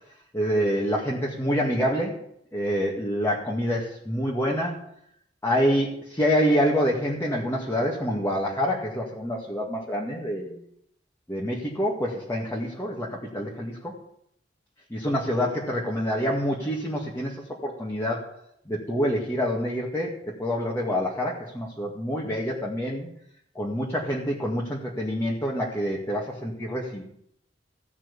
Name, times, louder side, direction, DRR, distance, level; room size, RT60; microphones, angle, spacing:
voice 1, 0.3-2.2 2.5-4.8 5.4-10.6 11.3-13.9 14.9-17.4 17.6-18.2 18.7-20.1 20.4-23.1 23.6-27.0, equal, 15° left, -4 dB, 2.1 m, -26 dB
16.0 x 6.1 x 8.3 m, 0.72 s
head